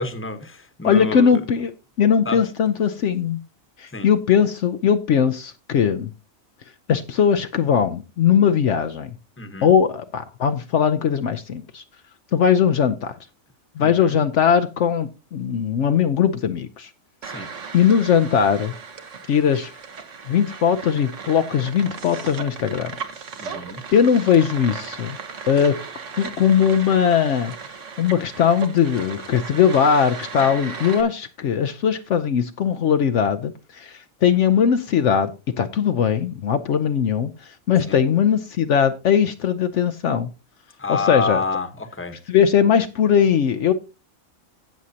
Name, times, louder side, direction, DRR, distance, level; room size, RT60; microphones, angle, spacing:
voice 1, 0.0-1.4 2.2-2.4 3.9-4.1 9.4-9.7 13.8-14.2 17.2-17.5 23.4-23.8 37.9-38.0 40.8-42.2, left 3 dB, 10° left, 1.0 m, -28 dB
voice 2, 0.8-1.7 2.0-3.4 3.8-6.1 6.9-9.1 9.6-11.8 12.3-13.2 13.8-16.9 17.7-18.7 19.3-19.7 20.3-23.0 23.9-25.2 25.5-25.8 26.2-27.5 28.0-40.3 40.9-41.4 42.3-43.7, left 8 dB, 65° left, 0.9 m, -19 dB
sound 1, 17.2-31.0, right 5 dB, 60° right, 1.5 m, -36 dB
16.5 x 6.3 x 2.8 m
omnidirectional pair, 1.4 m